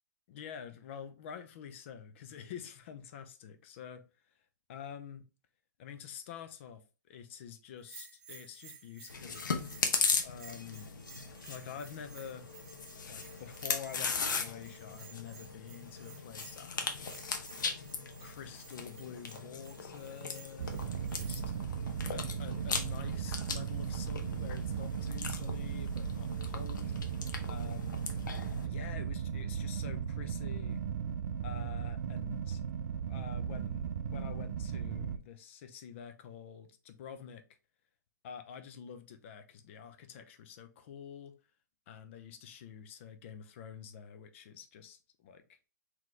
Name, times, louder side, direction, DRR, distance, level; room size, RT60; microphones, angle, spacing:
voice 1, 0.3-4.0 4.7-5.2 5.8-9.4 10.2-10.9 11.5-12.5 13.1-17.2 18.2-21.4 22.1-27.0 27.5-28.1 28.6-30.8 31.4-32.6 33.1-37.4 38.2-41.3 41.9-45.6, left 8 dB, 40° left, 0.6 m, -47 dB
Bell, 7.8-21.6, right 6 dB, 35° right, 0.9 m, -55 dB
Chewing mastication, 9.1-28.7, left 5 dB, 80° left, 0.9 m, -38 dB
sound 1, 20.6-35.2, right 7 dB, 60° right, 0.4 m, -37 dB
4.1 x 3.0 x 3.1 m
hypercardioid pair, 155°, 10 cm